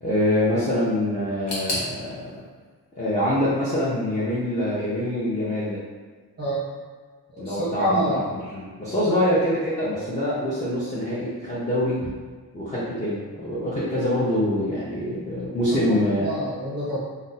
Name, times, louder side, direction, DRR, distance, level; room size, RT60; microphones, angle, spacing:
voice 1, 0.0-2.4 3.0-5.8 7.4-12.0 12.5-16.3, left 1 dB, 15° left, -10 dB, 0.6 m, -25 dB
sound 1, 1.5-4.3 4.6-5.4 5.7-5.8 6.7-6.8, left 1 dB, 70° left, 1.1 m, -36 dB
voice 2, 7.3-8.2 15.7-15.8 16.2-17.0, right 1 dB, 25° right, -10 dB, 0.7 m, -26 dB
2.5 x 2.1 x 3.9 m, 1.5 s
wide cardioid pair, 150°, 41 cm